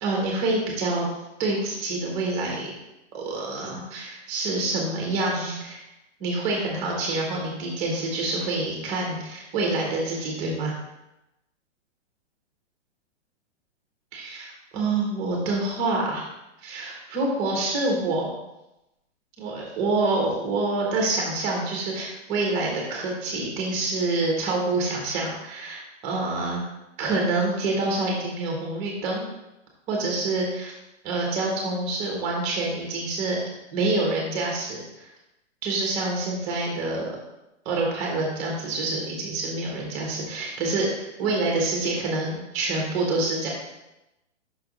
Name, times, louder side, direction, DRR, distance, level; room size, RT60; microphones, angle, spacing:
voice 1, 0.0-1.1 1.4-2.7 3.1-5.8 6.2-10.7 14.1-16.2 16.6-18.3 19.4-26.6 27.0-29.2 29.9-30.7 31.0-33.4 33.7-35.1 35.6-37.1 37.6-43.5, right 2 dB, 15° right, -1 dB, 1.0 m, -27 dB
5.8 x 3.4 x 5.0 m, 0.94 s
hypercardioid pair, 170°, 36 cm